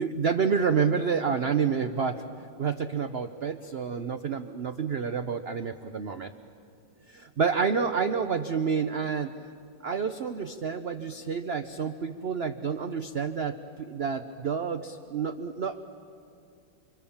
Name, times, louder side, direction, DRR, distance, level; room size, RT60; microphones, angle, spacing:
voice 1, 0.0-6.3 7.1-9.3 9.8-15.9, right 6 dB, 60° right, 9 dB, 0.6 m, -29 dB
30.0 x 25.5 x 7.2 m, 2.4 s
omnidirectional pair, 2.0 m